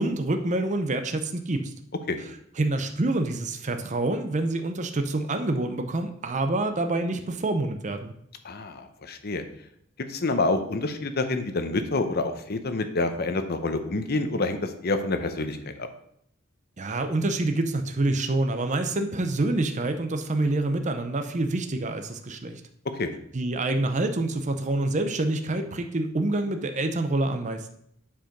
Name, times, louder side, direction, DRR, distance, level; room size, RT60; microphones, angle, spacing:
voice 1, 0.0-1.7 2.6-8.1 16.8-22.6 23.3-27.7, right 2 dB, 35° right, 7 dB, 0.7 m, -27 dB
voice 2, 8.4-9.4 10.1-15.9 22.9-23.1, left 2 dB, 50° left, 8 dB, 0.8 m, -27 dB
7.5 x 4.8 x 5.2 m, 0.72 s
head